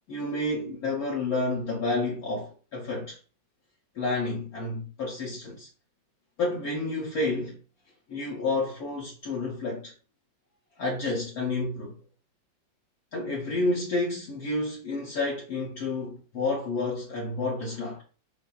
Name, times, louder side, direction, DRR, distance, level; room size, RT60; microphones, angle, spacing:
voice 1, 0.1-3.2 3.9-5.7 6.4-7.6 8.1-9.9 10.8-12.0 13.1-18.0, left 2 dB, 60° left, 1.2 m, -30 dB
5.3 x 2.5 x 2.4 m
omnidirectional pair, 2.0 m